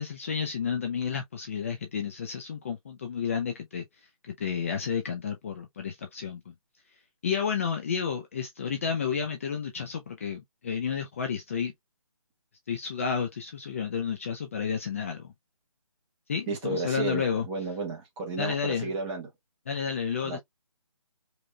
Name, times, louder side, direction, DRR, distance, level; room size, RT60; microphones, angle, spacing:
voice 1, 0.0-3.8 4.3-6.5 7.2-11.7 12.7-15.3 16.3-17.5 18.4-18.9 19.7-20.4, left 6 dB, 25° left, 0.4 m, -31 dB
voice 2, 16.5-19.3 20.2-20.4, right 3 dB, 15° right, 1.1 m, -32 dB
5.1 x 3.0 x 2.2 m
figure-of-eight pair, 155°, 19 cm